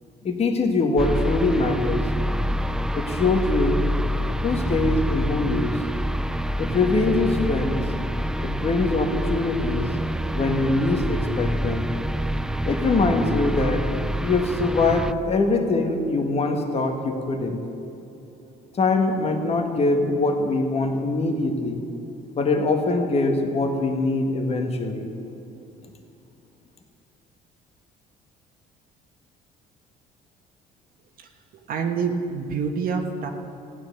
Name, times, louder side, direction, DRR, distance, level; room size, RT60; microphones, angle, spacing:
voice 1, 0.2-2.1 2.9-3.8 4.4-5.8 6.6-7.9 8.4-9.9 10.3-11.9 12.6-13.8 14.2-17.6 18.8-21.8 22.3-25.1, left 3 dB, 35° left, 4 dB, 1.7 m, -23 dB
sound 1, 1.0-15.1, equal, 5° right, 0.3 m, -26 dB
voice 2, 31.7-33.3, right 5 dB, 60° right, 3 dB, 1.4 m, -26 dB
15.0 x 10.0 x 6.8 m, 2.8 s
cardioid pair, 110°, 17 cm